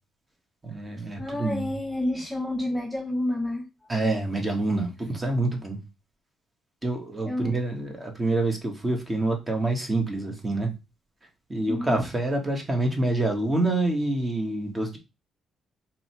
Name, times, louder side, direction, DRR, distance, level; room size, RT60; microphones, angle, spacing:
voice 1, 0.6-1.7 3.9-5.8 6.8-10.7 11.5-15.0, right 2 dB, 25° right, 1.5 m, -27 dB
voice 2, 1.2-3.7 7.3-7.6 11.7-12.0, left 1 dB, 5° left, 0.7 m, -29 dB
3.9 x 3.0 x 4.5 m
cardioid pair, 90°, 0 cm